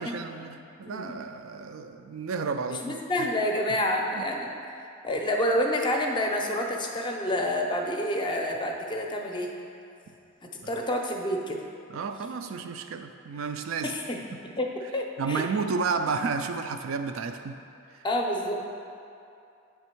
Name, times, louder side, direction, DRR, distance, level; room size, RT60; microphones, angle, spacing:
voice 1, 0.0-3.0 4.2-4.3 10.6-10.8 11.9-14.0 15.2-17.6 17.9-18.0, right 5 dB, 70° right, 7 dB, 0.4 m, -32 dB
voice 2, 0.8-1.1 2.7-4.5 4.7-9.5 10.7-11.6 13.8-14.0 14.6-15.4 18.0-18.6, left 1 dB, 20° left, 1 dB, 0.5 m, -28 dB
9.0 x 3.5 x 4.4 m, 2.6 s
head